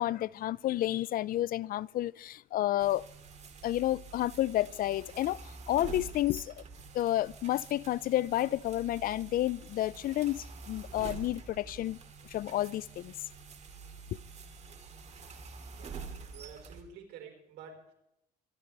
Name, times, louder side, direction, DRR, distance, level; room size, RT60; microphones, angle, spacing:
voice 1, 0.0-3.1 3.6-6.6 6.9-12.0 12.3-13.1, left 14 dB, 60° left, 0.4 m, -31 dB
sound 1, 2.8-16.8, right 5 dB, 40° right, 2.4 m, -47 dB
voice 2, 15.7-16.0 16.3-17.9, right 6 dB, 80° right, 4.5 m, -50 dB
25.0 x 12.0 x 3.3 m
cardioid pair, 110°, 17 cm